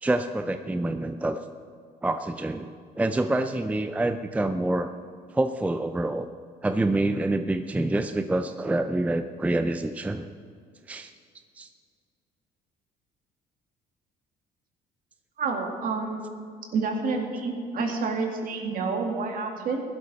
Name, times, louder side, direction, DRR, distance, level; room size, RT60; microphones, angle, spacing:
voice 1, 0.0-1.4 2.0-4.9 5.3-6.3 6.6-10.3 10.9-11.1 11.6-11.7, right 2 dB, 10° right, 9 dB, 0.5 m, -27 dB
voice 2, 15.4-16.3 16.7-19.8, right 4 dB, 55° right, 2 dB, 2.3 m, -29 dB
15.5 x 12.0 x 4.3 m, 2.2 s
cardioid pair, 110°, 17 cm